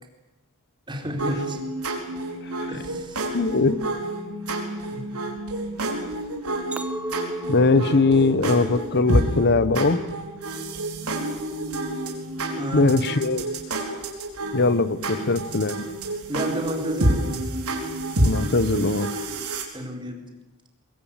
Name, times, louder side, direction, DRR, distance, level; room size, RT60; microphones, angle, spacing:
voice 1, 0.9-1.6 2.7-3.4 4.9-5.0 12.6-12.9 16.3-17.4 19.7-20.3, equal, 20° right, 3 dB, 4.2 m, -31 dB
sound 1, 1.2-19.6, right 1 dB, 80° right, 4.7 m, -29 dB
voice 2, 3.3-3.8 7.5-10.0 12.7-13.5 14.5-15.9 18.2-19.1, left 3 dB, 50° left, 16 dB, 1.0 m, -21 dB
Chink clink, 6.7-11.1 11.5-12.0, right 2 dB, 5° right, 1.2 m, -37 dB
23.0 x 22.0 x 9.1 m, 1.1 s
head